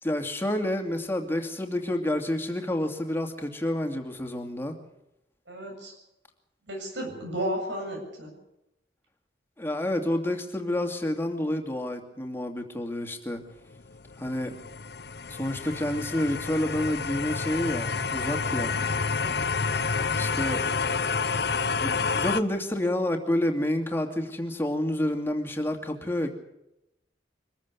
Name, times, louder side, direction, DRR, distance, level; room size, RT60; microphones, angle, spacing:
voice 1, 0.0-4.7 9.6-13.4 14.2-14.5 15.3-18.7 20.2-20.6 21.7-26.3, left 1 dB, 15° left, 4 dB, 2.7 m, -29 dB
voice 2, 5.5-5.9 6.7-8.3 19.2-19.3, equal, 80° right, 1 dB, 7.5 m, -33 dB
sound 1, 13.6-22.4, left 5 dB, 60° left, 1.0 m, -29 dB
24.5 x 14.5 x 8.2 m, 0.88 s
head